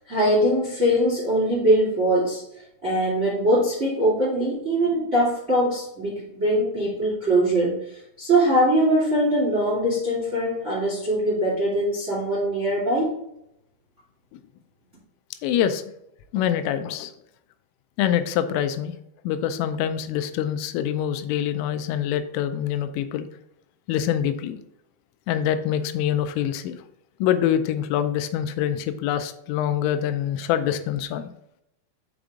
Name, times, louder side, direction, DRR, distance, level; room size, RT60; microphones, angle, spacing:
voice 1, 0.0-2.4 2.8-13.1, right 1 dB, 25° right, -8 dB, 1.6 m, -22 dB
voice 2, 15.4-15.8 16.3-17.1 18.0-18.9 19.2-23.3 23.9-24.6 25.3-26.8 27.2-31.3, left 10 dB, 85° left, 10 dB, 3.2 m, -25 dB
6.9 x 5.2 x 3.6 m, 0.78 s
omnidirectional pair, 5.8 m